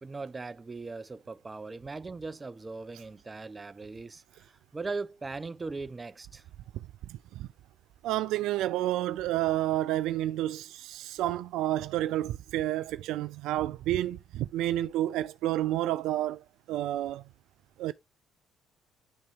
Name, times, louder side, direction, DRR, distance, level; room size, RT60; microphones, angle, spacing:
voice 1, 0.0-6.4, right 3 dB, 30° right, 0.8 m, -39 dB
voice 2, 8.0-17.2 17.8-17.9, right 14 dB, 75° right, 0.3 m, -30 dB
10.5 x 3.8 x 3.4 m
hypercardioid pair, 55°, 0 cm